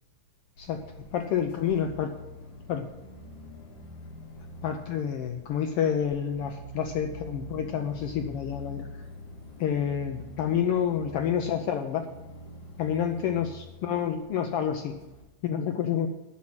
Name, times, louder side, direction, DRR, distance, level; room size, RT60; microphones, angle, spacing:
sound 1, 0.6-15.2, left 1 dB, 70° left, 4.8 m, -45 dB
voice 1, 1.1-2.1 2.7-2.9 4.6-8.9 9.6-12.0 12.8-14.9 15.4-16.1, left 8 dB, 85° left, 5 dB, 1.3 m, -28 dB
10.5 x 7.2 x 7.8 m, 1.1 s
omnidirectional pair, 3.5 m